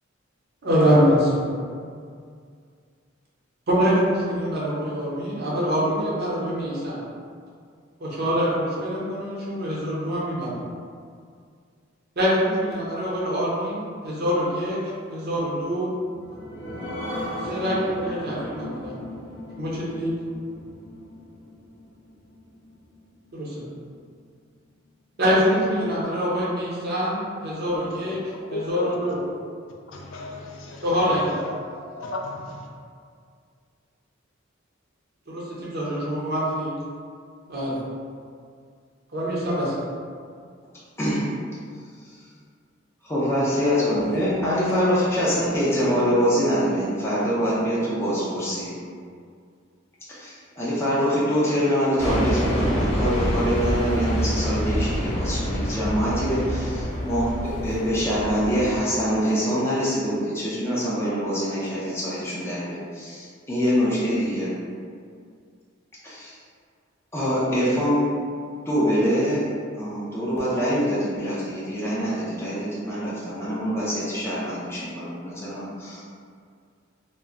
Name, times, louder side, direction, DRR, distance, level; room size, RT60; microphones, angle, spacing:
voice 1, 0.6-1.6 3.7-7.0 8.0-10.6 12.2-14.8 15.1-15.9 17.4-19.0 19.6-20.2 23.3-23.6 25.2-28.2 28.5-29.2 30.8-31.5 35.3-36.7 37.5-37.8 39.1-39.7, equal, 55° right, -7 dB, 0.8 m, -24 dB
sound 1, 16.0-23.1 23.5-23.6 24.0-24.1, equal, 25° right, 0.8 m, -36 dB
voice 2, 28.5-28.9 29.9-30.8 31.7-32.7, left 3 dB, 75° left, -1 dB, 0.4 m, -34 dB
voice 3, 43.0-48.7 50.1-64.5 66.0-66.3 67.1-68.1 68.7-69.5 69.7-76.0, equal, 15° left, -9 dB, 0.5 m, -24 dB
sound 2, 43.9-48.8, left 4 dB, 85° right, 0.5 m, -37 dB
sound 3, 52.0-58.9, equal, 35° left, 0.8 m, -26 dB
2.2 x 2.0 x 3.6 m, 2.1 s
head